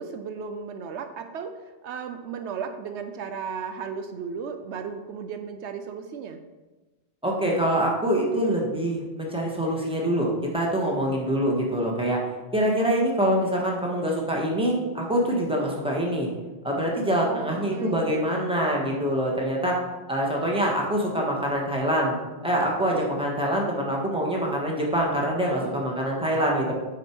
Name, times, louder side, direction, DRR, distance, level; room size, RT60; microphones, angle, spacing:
voice 1, 0.0-6.4 17.3-18.3, right 6 dB, 80° right, 8 dB, 0.9 m, -35 dB
voice 2, 7.2-12.2 12.5-16.3 16.6-19.8 20.1-22.1 22.4-26.7, equal, 5° right, -2 dB, 1.5 m, -25 dB
9.2 x 5.0 x 4.6 m, 1.2 s
omnidirectional pair, 1.2 m